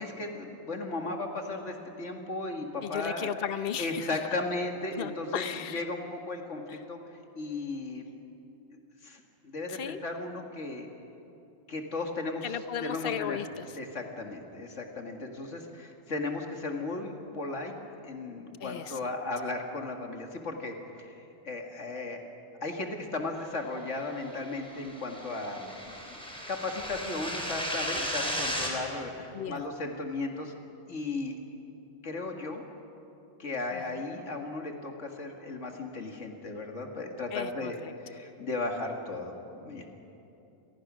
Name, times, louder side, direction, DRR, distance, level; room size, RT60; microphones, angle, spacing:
voice 1, 0.0-3.4 3.8-5.4 5.7-8.1 9.0-10.9 11.7-12.5 12.8-13.4 13.8-17.7 18.0-22.2 22.6-26.2 26.5-30.5 30.9-31.4 32.0-32.6 33.4-37.8 38.0-39.9, left 2 dB, 70° left, 3 dB, 2.3 m, -36 dB
voice 2, 2.8-4.2 4.9-5.8 6.7-6.8 9.7-10.0 12.4-13.8 18.6-19.1 29.3-29.7 33.7-34.0 37.3-38.2, left 8 dB, 50° left, 11 dB, 1.0 m, -36 dB
sound 1, 24.3-28.7, equal, 5° left, 4.2 m, -35 dB
29.5 x 22.0 x 6.3 m, 2.9 s
omnidirectional pair, 1.3 m